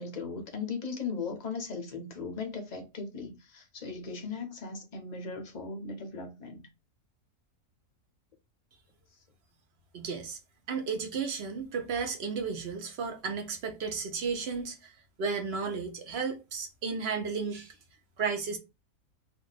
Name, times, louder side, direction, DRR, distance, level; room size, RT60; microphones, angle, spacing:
voice 1, 0.0-6.7, left 4 dB, 40° left, 0.6 m, -38 dB
voice 2, 9.9-10.4 10.7-14.9 15.2-17.7 18.2-18.6, right 5 dB, 55° right, 0.8 m, -33 dB
2.6 x 2.4 x 3.9 m
omnidirectional pair, 1.6 m